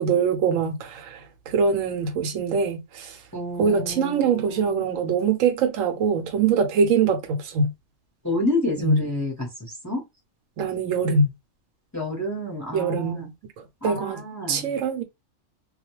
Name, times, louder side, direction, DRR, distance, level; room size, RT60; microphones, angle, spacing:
voice 1, 0.0-3.2 3.6-7.7 8.8-9.0 10.6-11.3 12.7-13.3 13.8-14.2 14.5-15.0, right 5 dB, 85° right, 1.0 m, -23 dB
voice 2, 3.3-4.9 8.2-10.0 11.9-13.3 13.8-14.7, left 1 dB, 15° left, 0.8 m, -29 dB
2.3 x 2.2 x 2.9 m
omnidirectional pair, 1.3 m